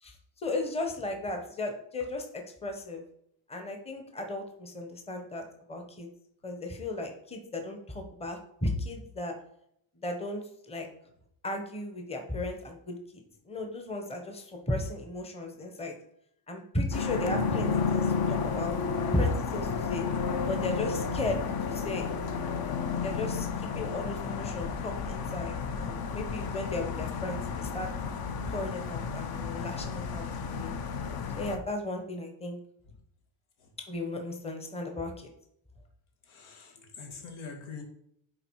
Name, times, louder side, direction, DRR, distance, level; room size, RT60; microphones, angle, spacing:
voice 1, 0.0-3.0 3.5-5.4 5.7-6.1 6.4-9.3 10.0-10.9 11.4-15.9 16.5-18.8 19.1-20.0 20.5-21.4 21.7-22.1 22.9-27.9 28.5-30.7 31.3-32.6 33.9-35.3, left 2 dB, 15° left, 4 dB, 1.0 m, -35 dB
sound 1, 16.9-31.6, left 5 dB, 50° left, 0.9 m, -32 dB
voice 2, 36.2-37.8, left 5 dB, 80° left, 2 dB, 2.2 m, -44 dB
10.0 x 4.0 x 4.7 m, 0.73 s
cardioid pair, 140°, 48 cm